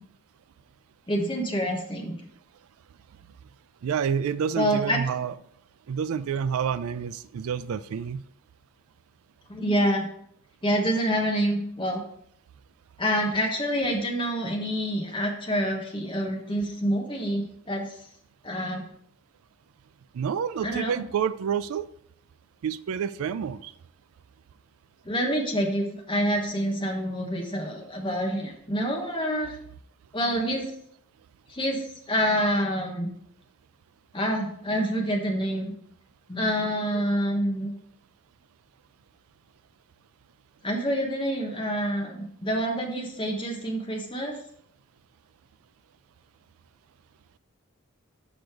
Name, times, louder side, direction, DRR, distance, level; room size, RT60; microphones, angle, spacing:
voice 1, 1.1-2.2 4.5-5.0 9.5-10.1 10.6-12.0 13.0-17.9 18.4-18.9 20.6-21.0 25.0-29.5 30.1-30.7 31.5-33.1 34.1-35.7 36.3-37.7 40.6-44.4, equal, 20° left, 1 dB, 1.2 m, -27 dB
voice 2, 3.8-5.3 5.9-8.2 20.1-21.9 22.6-23.7, right 7 dB, 75° right, 15 dB, 0.3 m, -28 dB
6.6 x 5.2 x 4.5 m, 0.68 s
head